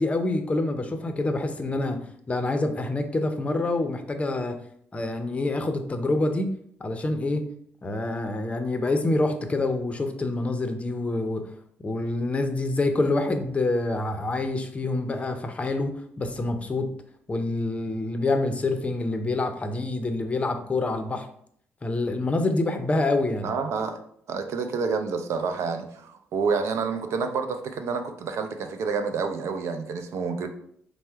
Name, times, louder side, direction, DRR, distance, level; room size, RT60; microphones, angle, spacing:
voice 1, 0.0-2.0 2.3-4.6 4.9-6.5 6.8-7.4 7.8-11.5 11.8-16.9 17.3-21.3 21.8-23.5, left 2 dB, 25° left, 6 dB, 0.6 m, -26 dB
voice 2, 23.4-24.0 24.3-30.5, right 5 dB, 70° right, 7 dB, 0.5 m, -28 dB
4.4 x 2.1 x 4.4 m, 0.65 s
cardioid pair, 85°, 5 cm